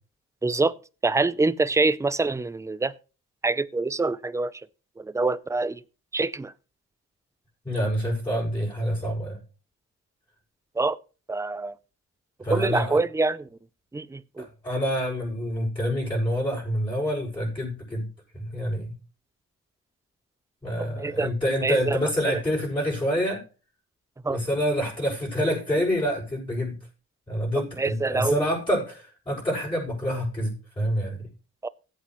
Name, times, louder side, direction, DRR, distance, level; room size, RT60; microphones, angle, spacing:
voice 1, 0.4-0.8 1.0-2.9 3.4-4.7 5.0-5.8 6.1-6.5 10.8-11.0 11.3-11.8 12.5-13.5 13.9-14.5 20.8-21.3 21.6-22.0 22.3-22.4 24.2-24.4 27.8-28.4 31.6-31.7, right 3 dB, 10° right, 0.5 m, -25 dB
voice 2, 7.6-9.4 12.4-13.0 14.4-18.0 18.3-18.9 20.6-23.4 24.3-26.8 27.3-31.3, equal, 15° left, 6.6 m, -27 dB
15.5 x 8.4 x 3.1 m
cardioid pair, 90°, 30 cm